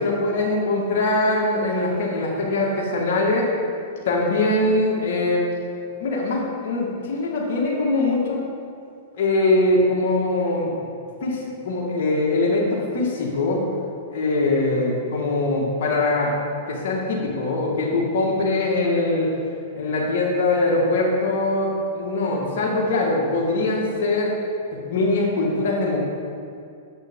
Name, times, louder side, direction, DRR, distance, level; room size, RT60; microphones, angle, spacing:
voice 1, 0.0-3.5 4.1-5.4 6.0-8.4 9.2-10.7 11.2-13.6 14.1-16.4 16.7-19.3 19.7-24.3 24.7-26.0, left 2 dB, 65° left, -3 dB, 1.8 m, -22 dB
8.9 x 6.9 x 3.7 m, 2.4 s
hypercardioid pair, 125°, 0 cm